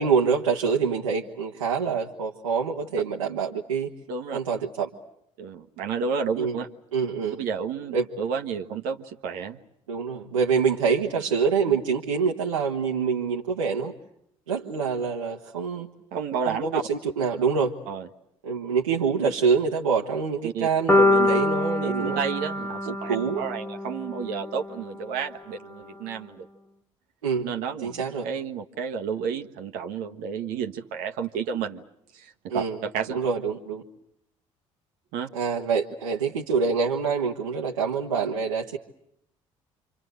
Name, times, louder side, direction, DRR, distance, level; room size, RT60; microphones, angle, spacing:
voice 1, 0.0-3.9 4.3-4.9 6.4-6.6 6.9-7.4 7.9-8.1 9.9-13.9 14.5-15.9 16.5-17.7 18.4-22.2 22.8-23.4 27.2-27.5 27.8-28.3 32.5-32.8 33.1-33.8 35.3-38.8, right 5 dB, 80° right, 0 dB, 1.4 m, -25 dB
voice 2, 4.1-4.4 5.4-6.7 7.4-9.6 16.1-16.8 17.9-18.1 20.4-20.7 21.1-21.3 21.8-26.5 27.4-31.8 32.1-33.2 35.1-35.3, right 6 dB, 60° right, 4 dB, 1.4 m, -31 dB
sound 1, 20.9-25.0, left 2 dB, 10° left, 1.7 m, -25 dB
28.5 x 25.5 x 7.9 m, 0.78 s
figure-of-eight pair, 50°, 17 cm